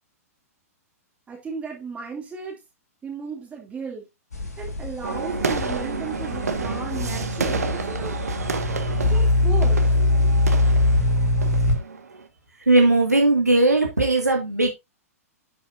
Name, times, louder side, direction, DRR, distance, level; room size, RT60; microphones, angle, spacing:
voice 1, 1.3-2.6 3.0-4.1 4.6-8.2 9.1-9.9, right 5 dB, 15° right, 2.7 m, -35 dB
sound 1, 4.3-11.8, left 2 dB, 85° left, 2.8 m, -22 dB
sound 2, 5.0-12.3, right 4 dB, 75° right, 1.7 m, -30 dB
voice 2, 12.7-14.7, right 2 dB, 90° right, 2.1 m, -18 dB
11.5 x 6.3 x 2.7 m
figure-of-eight pair, 110°, 8 cm